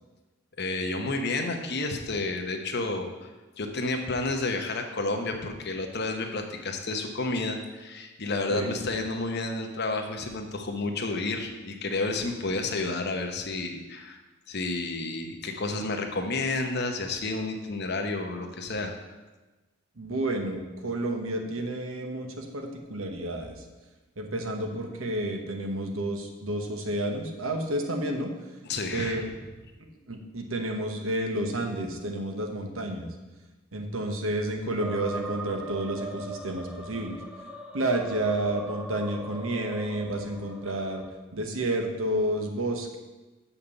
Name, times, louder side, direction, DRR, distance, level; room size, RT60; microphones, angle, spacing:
voice 1, 0.6-3.3 3.6-14.2 14.5-18.9 28.6-29.2, left 2 dB, 50° left, 4 dB, 1.0 m, -30 dB
voice 2, 20.0-23.6 24.2-28.3 28.9-29.3 30.1-33.1 33.7-37.2 37.7-41.0 41.3-43.0, right 1 dB, 75° right, 4 dB, 1.2 m, -30 dB
sound 1, 34.8-41.1, right 2 dB, 5° right, 0.7 m, -41 dB
6.8 x 5.8 x 7.0 m, 1.2 s
head